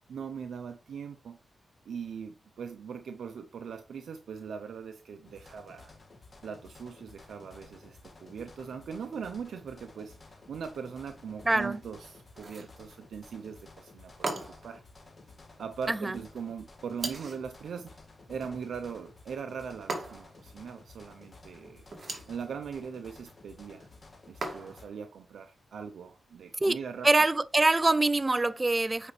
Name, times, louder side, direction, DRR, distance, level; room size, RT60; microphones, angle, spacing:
voice 1, 0.1-1.4 1.9-5.9 6.4-14.8 15.6-18.0 18.3-21.8 22.3-23.9 24.3-27.1, right 6 dB, 80° right, 0.7 m, -40 dB
sound 1, 5.2-24.8, left 3 dB, 35° left, 1.9 m, -54 dB
voice 2, 11.5-11.8 15.9-16.1 26.6-26.8 27.0-29.1, right 2 dB, 25° right, 0.4 m, -24 dB
sound 2, 12.3-12.8 14.2-14.8 17.0-17.5 19.9-20.4 21.9-22.4 24.4-24.9, right 3 dB, 45° right, 2.0 m, -37 dB
8.2 x 5.3 x 3.3 m
cardioid pair, 90°, 0 cm